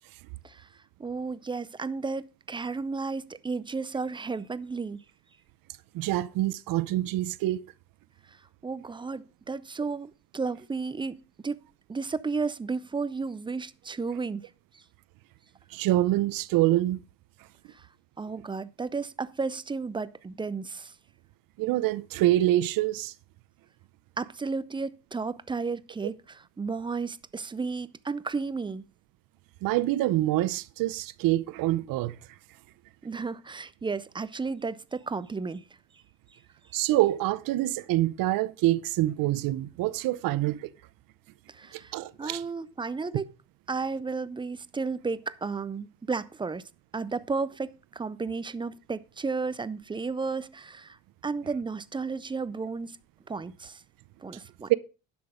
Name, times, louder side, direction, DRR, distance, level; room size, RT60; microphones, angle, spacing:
voice 1, 1.0-5.0 8.3-8.4 8.6-11.6 11.9-14.4 14.7-14.8 17.7-17.9 18.2-20.9 24.2-28.8 33.0-35.6 41.5-41.9 42.2-43.3 43.7-51.0 51.2-53.0 53.3-53.8 54.2-54.7, right 4 dB, 15° right, 0.4 m, -33 dB
voice 2, 5.9-7.6 15.7-17.0 21.6-23.1 29.6-32.1 36.7-40.7 41.7-42.4 54.7-54.8, right 15 dB, 80° right, 0.7 m, -26 dB
10.5 x 6.1 x 5.0 m
cardioid pair, 110°, 34 cm